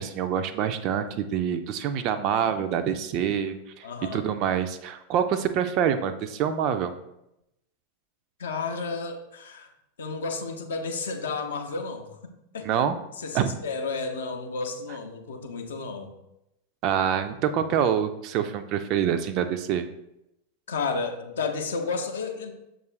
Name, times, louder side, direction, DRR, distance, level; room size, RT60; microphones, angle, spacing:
voice 1, 0.0-3.9 4.1-6.9 12.6-13.0 13.3-13.5 16.8-19.9, right 8 dB, 40° right, 9 dB, 0.3 m, -26 dB
voice 2, 3.8-4.2 8.4-9.7 10.0-12.7 13.2-16.1 20.7-22.5, left 4 dB, 65° left, 4 dB, 0.5 m, -32 dB
6.6 x 2.4 x 3.1 m, 0.86 s
figure-of-eight pair, 90°, 0 cm